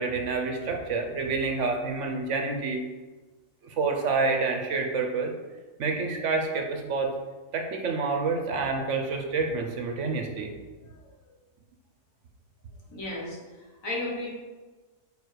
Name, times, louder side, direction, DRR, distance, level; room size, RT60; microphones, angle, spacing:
voice 1, 0.0-2.8 3.6-5.3 5.8-7.1 7.5-10.5, right 4 dB, 60° right, 3 dB, 1.0 m, -28 dB
voice 2, 10.9-11.3 12.9-13.4 13.8-14.3, left 2 dB, 60° left, -3 dB, 1.9 m, -34 dB
5.0 x 5.0 x 4.7 m, 1.3 s
omnidirectional pair, 1.6 m